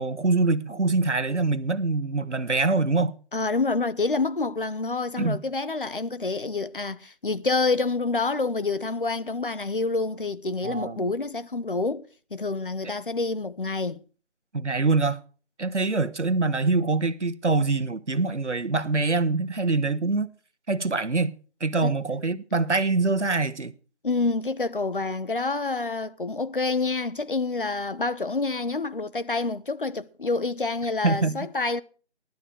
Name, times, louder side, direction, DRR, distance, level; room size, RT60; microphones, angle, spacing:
voice 1, 0.0-3.1 5.2-5.4 10.6-11.1 14.5-15.2 15.6-20.3 20.7-21.3 21.6-23.7 31.0-31.4, right 3 dB, 90° right, 1.4 m, -24 dB
voice 2, 3.3-14.0 21.8-21.9 24.0-31.8, left 3 dB, 50° left, 0.9 m, -27 dB
14.5 x 12.0 x 4.4 m
figure-of-eight pair, 170°, 34 cm